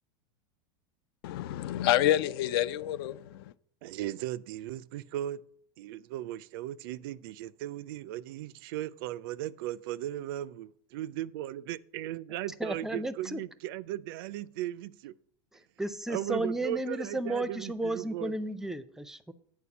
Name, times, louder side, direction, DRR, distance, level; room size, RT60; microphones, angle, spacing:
voice 1, 1.2-3.5, left 13 dB, 70° left, 0.4 m, -28 dB
voice 2, 3.8-5.4 5.8-15.1 16.1-18.3, right 13 dB, 65° right, 0.4 m, -37 dB
voice 3, 12.6-13.4 15.8-19.3, right 1 dB, 5° right, 0.4 m, -33 dB
8.6 x 4.6 x 6.9 m
supercardioid pair, 140°, 13 cm